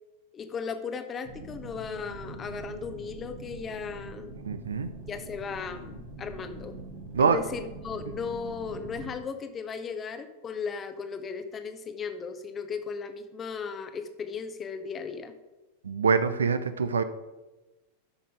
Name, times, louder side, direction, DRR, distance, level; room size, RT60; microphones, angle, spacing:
voice 1, 0.3-4.3 5.1-5.9 6.2-6.7 7.2-15.3, left 5 dB, 25° left, 9 dB, 0.8 m, -36 dB
sound 1, 1.2-9.2, right 2 dB, 40° right, 2.1 m, -43 dB
voice 2, 4.5-4.9 7.1-7.4 15.8-17.0, right 5 dB, 70° right, 11 dB, 0.5 m, -24 dB
12.5 x 5.5 x 3.8 m, 1.1 s
figure-of-eight pair, 90°, 0 cm